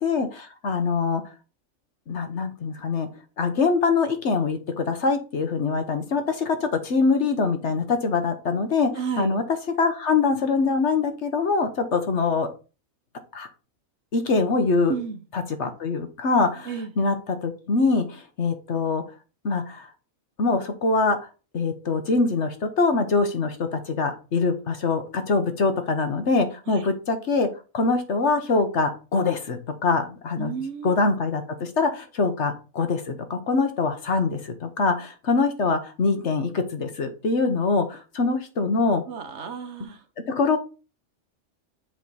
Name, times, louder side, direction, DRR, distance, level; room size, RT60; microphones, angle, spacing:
voice 1, 0.0-1.2 2.1-3.1 3.4-8.9 9.2-9.4 9.8-12.5 13.3-13.5 14.1-14.9 15.3-17.1 17.4-19.0 19.4-19.9 20.4-21.2 21.5-27.5 27.7-30.5 30.8-39.0 40.3-40.6, left 4 dB, 60° left, 1.3 m, -24 dB
voice 2, 8.9-9.4 14.9-15.2 16.6-16.9 26.7-26.8 30.4-30.9 39.1-40.0, right 6 dB, 60° right, 1.1 m, -32 dB
7.6 x 5.0 x 4.1 m
omnidirectional pair, 1.4 m